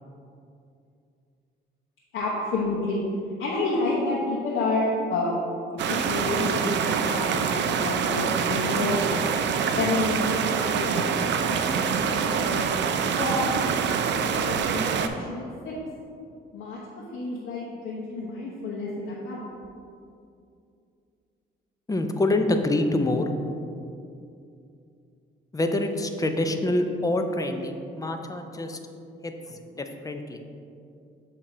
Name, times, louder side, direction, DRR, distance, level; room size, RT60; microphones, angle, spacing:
voice 1, 2.1-3.0 3.4-5.4 5.9-9.2 9.8-11.3 11.7-12.7 13.2-15.7 16.5-19.4, left 2 dB, 80° left, -5 dB, 0.9 m, -30 dB
sound 1, 5.8-15.1, right 6 dB, 65° right, 0.4 m, -25 dB
voice 2, 21.9-23.3 25.5-28.8 29.2-30.4, left 2 dB, 15° left, 6 dB, 0.5 m, -26 dB
7.1 x 2.8 x 4.8 m, 2.5 s
cardioid pair, 90°, 20 cm